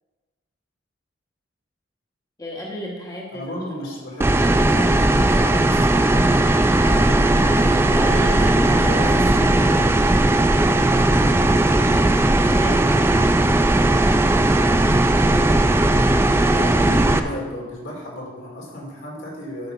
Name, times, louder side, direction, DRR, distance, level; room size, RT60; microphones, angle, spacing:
voice 1, 2.4-3.9 7.9-13.4, equal, 20° left, -3 dB, 1.3 m, -35 dB
voice 2, 3.3-6.4 6.8-7.8 8.2-9.2 13.9-14.1 14.5-15.4 15.8-16.0 16.5-19.7, left 1 dB, 80° left, -2 dB, 2.9 m, -34 dB
sound 1, 4.2-17.2, right 1 dB, 10° right, 0.4 m, -17 dB
9.5 x 5.5 x 5.7 m, 1.3 s
head